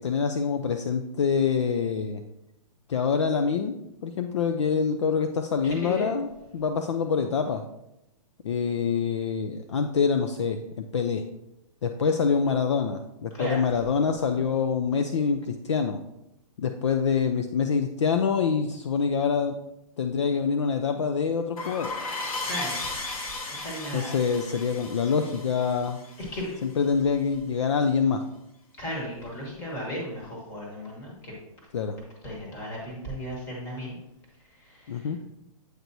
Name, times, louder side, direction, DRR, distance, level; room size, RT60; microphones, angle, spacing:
voice 1, 0.0-2.2 2.9-3.8 4.0-6.3 6.5-7.6 8.4-11.2 11.8-16.0 16.6-19.6 20.0-21.9 23.9-26.0 26.6-28.2 31.7-32.0 34.9-35.2, left 6 dB, 50° left, 6 dB, 0.4 m, -25 dB
voice 2, 5.6-6.1 13.3-13.6 22.4-22.8 23.5-24.1 26.3-26.5 28.8-31.3 32.2-34.0 34.4-35.1, equal, 15° left, -2 dB, 1.2 m, -35 dB
sound 1, 21.6-26.9, left 3 dB, 70° left, 1.3 m, -35 dB
7.9 x 4.5 x 2.7 m, 0.87 s
hypercardioid pair, 180°, 19 cm